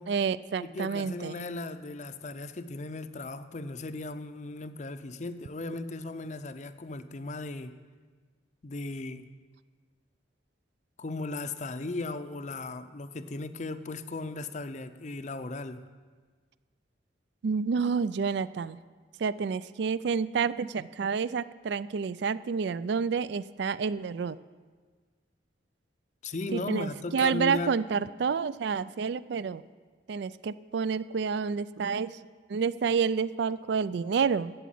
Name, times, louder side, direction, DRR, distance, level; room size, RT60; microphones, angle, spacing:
voice 1, 0.1-1.4 17.4-18.8 19.2-24.4 26.5-29.6 30.1-32.2 32.5-34.5, right 5 dB, 60° right, 17 dB, 0.3 m, -29 dB
voice 2, 0.6-7.8 8.6-9.3 11.0-15.9 26.2-27.8, left 2 dB, 35° left, 11 dB, 0.5 m, -37 dB
12.5 x 8.2 x 7.6 m, 1.5 s
head